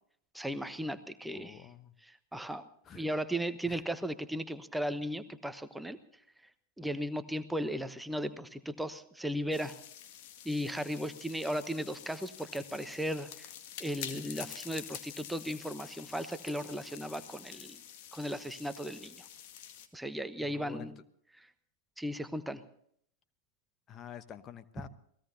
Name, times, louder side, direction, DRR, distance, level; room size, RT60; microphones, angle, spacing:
voice 1, 0.3-1.7 2.0-2.6 2.9-6.0 6.8-9.7 10.4-13.5 13.8-17.8 18.1-19.2 19.9-21.0 21.4-21.5 22.0-22.6, equal, 5° right, 11 dB, 1.0 m, -36 dB
voice 2, 1.3-1.9 2.8-3.0 3.7-3.8 20.4-20.9 23.9-24.9, left 9 dB, 25° left, 12 dB, 1.0 m, -48 dB
sound 1, 9.5-19.9, left 10 dB, 45° left, 1.9 m, -48 dB
28.5 x 18.5 x 2.7 m, 0.66 s
figure-of-eight pair, 90°, 0 cm